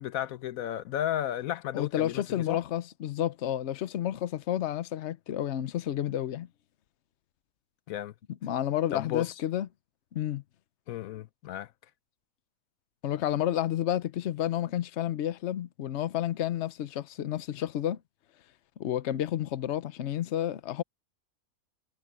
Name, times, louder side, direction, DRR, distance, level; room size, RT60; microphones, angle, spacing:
voice 1, 0.0-2.6 7.9-8.1 8.9-9.3 10.9-11.7, left 12 dB, 80° left, 1.1 m, -33 dB
voice 2, 1.7-6.5 8.4-9.7 10.1-10.4 13.0-18.0 18.8-20.8, left 11 dB, 60° left, 1.0 m, -30 dB
omnidirectional pair, 1.4 m